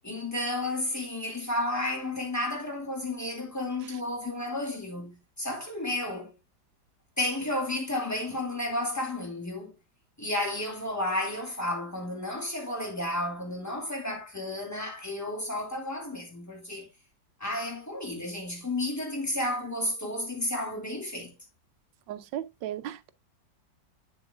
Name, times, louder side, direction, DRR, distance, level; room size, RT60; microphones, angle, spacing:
voice 1, 0.0-6.3 7.2-9.7 10.2-16.9 17.4-21.3, left 1 dB, 10° left, 2.4 m, -32 dB
voice 2, 22.1-23.1, right 11 dB, 80° right, 1.4 m, -36 dB
8.9 x 6.9 x 2.4 m
omnidirectional pair, 2.0 m